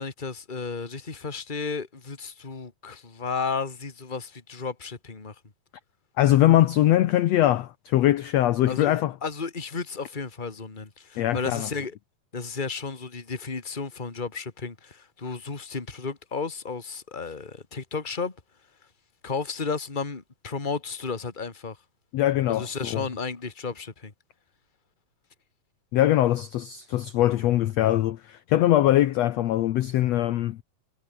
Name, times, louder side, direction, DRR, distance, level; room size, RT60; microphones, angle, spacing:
voice 1, 0.0-5.4 8.7-12.0 12.3-18.4 19.2-21.8 22.5-24.1, left 4 dB, 15° left, 2.1 m, -33 dB
voice 2, 6.2-9.1 11.2-11.7 22.1-23.0 25.9-30.6, left 13 dB, 70° left, 1.7 m, -22 dB
omnidirectional pair, 3.9 m